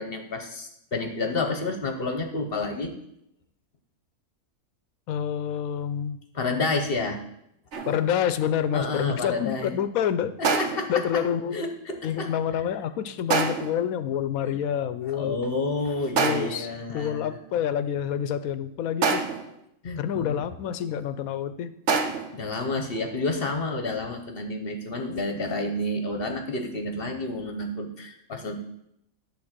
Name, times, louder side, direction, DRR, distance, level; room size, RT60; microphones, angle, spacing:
voice 1, 0.0-2.9 6.3-7.2 8.7-9.7 10.4-11.2 11.5-12.3 14.4-14.6 15.2-17.4 19.8-20.4 22.3-28.6, left 2 dB, 45° left, 5 dB, 1.0 m, -30 dB
voice 2, 5.1-6.2 7.8-10.5 10.9-11.6 12.0-15.6 16.2-16.7 16.9-19.2 20.0-21.7, left 9 dB, 70° left, 13 dB, 1.0 m, -28 dB
sound 1, 7.7-8.2 10.4-11.0 13.3-13.8 16.2-16.7 19.0-19.6 21.9-22.4, right 4 dB, 55° right, 1.1 m, -26 dB
11.0 x 3.7 x 7.3 m, 0.78 s
omnidirectional pair, 1.6 m